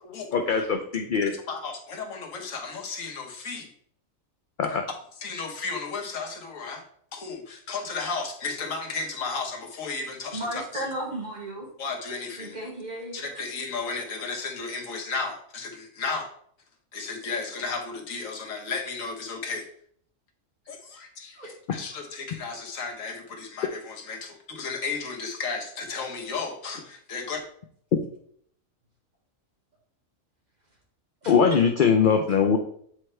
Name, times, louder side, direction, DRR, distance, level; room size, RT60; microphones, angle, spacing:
voice 1, 0.3-1.3 4.6-4.8 31.3-32.6, left 6 dB, 60° left, 5 dB, 0.5 m, -21 dB
voice 2, 1.2-3.7 4.7-4.8 5.2-6.8 7.1-10.8 11.8-12.6 13.1-16.3 16.9-19.7 20.7-27.4, left 4 dB, 80° left, 2 dB, 1.5 m, -34 dB
voice 3, 10.3-11.7 12.4-13.2 16.9-17.0 21.4-21.5 31.2-31.7, right 1 dB, 35° right, -3 dB, 1.9 m, -34 dB
7.6 x 4.4 x 3.2 m, 0.63 s
omnidirectional pair, 1.4 m